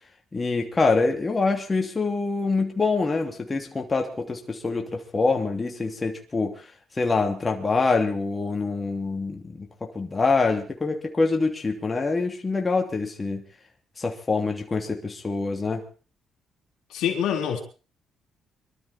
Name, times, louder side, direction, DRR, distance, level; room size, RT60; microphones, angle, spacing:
voice 1, 0.3-6.6 7.0-9.7 9.9-13.4 14.0-15.8, left 3 dB, 25° left, 3.0 m, -25 dB
voice 2, 16.9-17.6, left 9 dB, 85° left, 3.7 m, -25 dB
24.0 x 13.0 x 4.5 m
cardioid pair, 90°, 0 cm